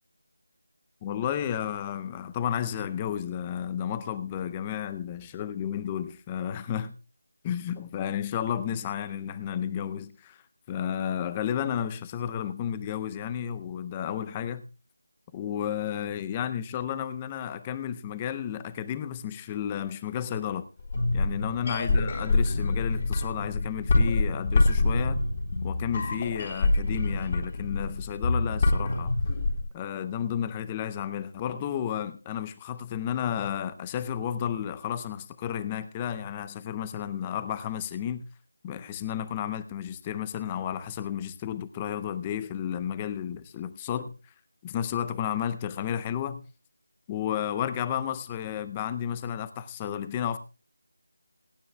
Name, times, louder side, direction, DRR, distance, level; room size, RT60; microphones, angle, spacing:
voice 1, 1.0-6.9 7.4-10.4 10.7-14.6 15.3-20.7 21.1-25.2 25.6-29.1 29.7-38.2 38.6-44.1 44.6-46.4 47.1-50.4, left 9 dB, 15° left, 0.5 m, -32 dB
sound 1, 20.8-29.6, left 2 dB, 35° left, 3.7 m, -26 dB
27.0 x 9.3 x 2.2 m
figure-of-eight pair, 175°, 0 cm